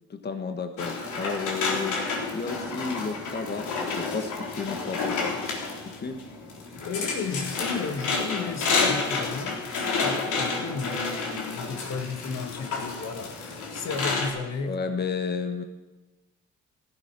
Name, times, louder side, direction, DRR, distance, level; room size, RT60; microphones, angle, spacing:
voice 1, 0.1-2.0 2.3-5.4 5.8-6.2 14.6-15.6, left 5 dB, 35° left, 1.4 m, -32 dB
sound 1, 0.8-14.3, left 4 dB, 85° left, 3.9 m, -30 dB
voice 2, 6.8-14.8, left 4 dB, 60° left, 1.8 m, -34 dB
15.0 x 14.0 x 6.1 m
cardioid pair, 90°, 30 cm